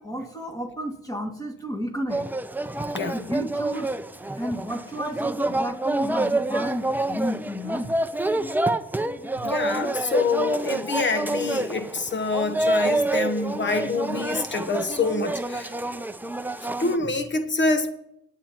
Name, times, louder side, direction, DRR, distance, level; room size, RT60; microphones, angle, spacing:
voice 1, 0.0-2.2 3.1-3.9 4.4-7.9, equal, 10° left, 2.1 m, -31 dB
sound 1, 2.1-17.0, right 2 dB, 5° right, 0.6 m, -27 dB
voice 2, 9.4-15.7 16.8-17.9, left 3 dB, 40° left, 1.0 m, -26 dB
18.0 x 9.0 x 2.9 m
cardioid pair, 90°, 30 cm